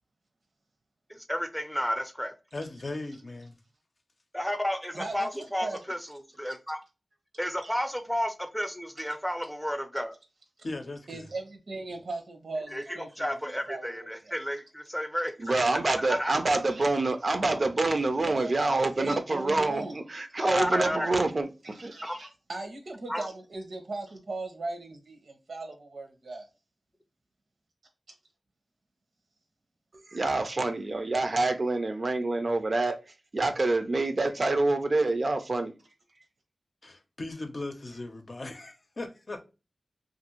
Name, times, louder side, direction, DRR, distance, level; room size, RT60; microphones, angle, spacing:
voice 1, 1.1-2.3 4.3-6.8 7.4-10.2 12.7-15.6 16.0-16.3 20.4-21.1 22.0-22.2 23.1-23.3, equal, 5° left, 0.5 m, -32 dB
voice 2, 2.5-3.5 10.6-11.3 36.8-39.4, left 2 dB, 55° left, 0.6 m, -38 dB
voice 3, 4.9-5.8 6.4-6.6 7.6-7.7 11.1-14.3 15.6-15.7 16.7-16.9 18.3-18.5 19.0-20.0 21.6-26.5, right 2 dB, 85° right, 0.8 m, -38 dB
voice 4, 15.4-21.5 21.8-21.9 30.1-33.0 33.3-35.7, right 2 dB, 55° right, 0.4 m, -26 dB
2.6 x 2.5 x 2.9 m
wide cardioid pair, 70°, 0 cm